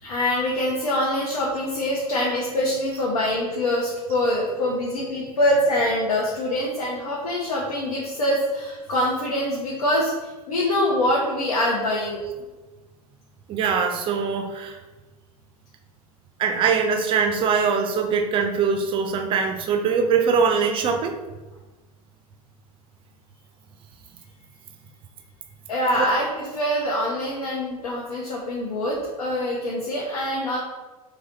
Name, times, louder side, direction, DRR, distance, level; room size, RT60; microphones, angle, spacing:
voice 1, 0.0-12.2 25.7-30.6, left 1 dB, 70° left, -3 dB, 0.8 m, -24 dB
voice 2, 13.5-14.8 16.4-21.2 26.0-26.1, right 6 dB, 25° right, 6 dB, 0.4 m, -22 dB
4.0 x 2.9 x 3.8 m, 1.2 s
figure-of-eight pair, 85°, 19 cm